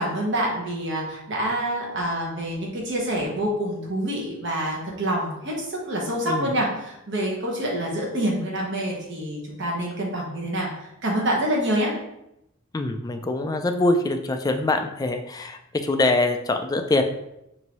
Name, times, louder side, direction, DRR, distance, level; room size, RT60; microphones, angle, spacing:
voice 1, 0.0-11.9, right 1 dB, 65° right, -2 dB, 1.2 m, -27 dB
voice 2, 12.7-17.0, left 2 dB, 20° left, 6 dB, 0.3 m, -24 dB
5.3 x 2.6 x 3.0 m, 0.84 s
head